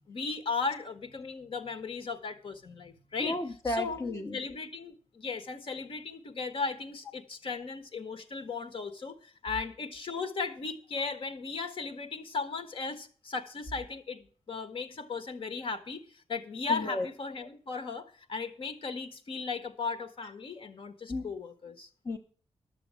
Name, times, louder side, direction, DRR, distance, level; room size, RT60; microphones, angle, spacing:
voice 1, 0.1-3.4 3.6-4.0 4.3-21.9, left 4 dB, 55° left, 10 dB, 1.4 m, -36 dB
voice 2, 3.2-4.4 16.7-17.1 21.1-21.3 22.1-22.2, left 1 dB, 30° left, 4 dB, 0.8 m, -33 dB
12.0 x 7.1 x 7.5 m, 0.43 s
wide cardioid pair, 140°, 11 cm